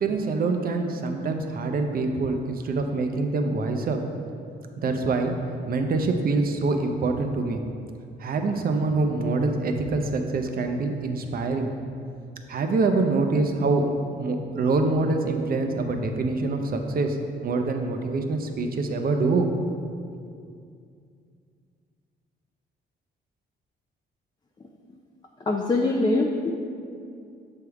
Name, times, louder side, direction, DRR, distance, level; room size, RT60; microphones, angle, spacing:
voice 1, 0.0-4.0 4.8-5.3 5.7-7.6 8.2-11.7 12.5-13.8 14.1-17.2 17.4-19.5, right 3 dB, 50° right, 5 dB, 0.6 m, -25 dB
voice 2, 25.5-26.5, left 2 dB, 20° left, 1 dB, 0.5 m, -23 dB
6.6 x 3.6 x 4.6 m, 2.4 s
cardioid pair, 90°, 20 cm